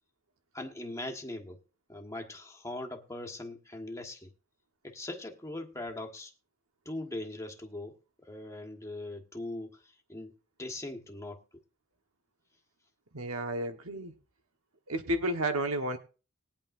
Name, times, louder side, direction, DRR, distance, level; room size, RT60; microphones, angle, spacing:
voice 1, 0.5-1.6 1.9-4.3 4.8-6.3 6.8-9.8 10.1-10.3 10.6-11.4, left 1 dB, 15° left, 1.4 m, -40 dB
voice 2, 13.1-14.1 14.9-16.0, right 1 dB, 80° right, 1.3 m, -31 dB
20.5 x 8.6 x 2.6 m
head